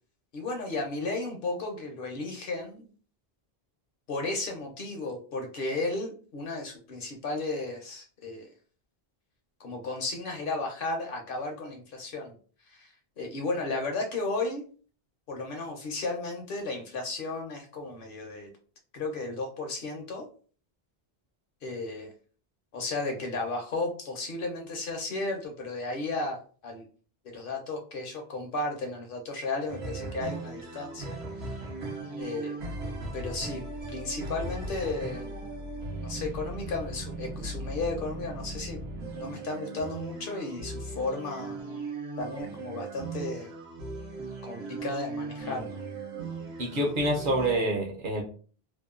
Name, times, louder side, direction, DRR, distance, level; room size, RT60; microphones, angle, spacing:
voice 1, 0.3-2.9 4.1-8.5 9.6-12.3 12.7-12.9 13.2-14.6 15.3-18.5 18.9-20.3 21.6-22.1 22.7-26.9 27.2-31.2 32.2-32.6 33.1-33.6 33.9-35.3 36.0-38.8 39.1-41.6 42.2-43.5 44.4-45.8, left 3 dB, 65° left, 2 dB, 0.8 m, -34 dB
sound 1, 29.7-47.6, right 2 dB, 85° right, 0.9 m, -38 dB
voice 2, 46.6-48.2, right 1 dB, 60° right, 1 dB, 0.8 m, -27 dB
2.8 x 2.0 x 2.3 m, 0.40 s
omnidirectional pair, 1.0 m